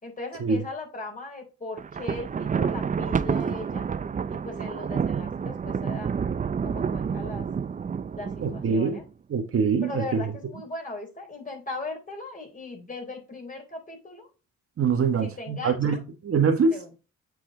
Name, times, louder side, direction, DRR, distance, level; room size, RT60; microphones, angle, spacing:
voice 1, 0.0-3.9 4.3-6.1 6.6-7.5 8.2-9.0 9.8-14.3 15.2-16.0 16.7-16.9, left 2 dB, 25° left, 3.9 m, -38 dB
Thunder, 1.8-9.0, right 6 dB, 25° right, 0.5 m, -29 dB
voice 2, 8.4-9.0 9.3-10.2 14.8-16.0 16.2-16.8, right 5 dB, 50° right, 1.6 m, -24 dB
8.0 x 4.7 x 4.1 m
cardioid pair, 90°, 30 cm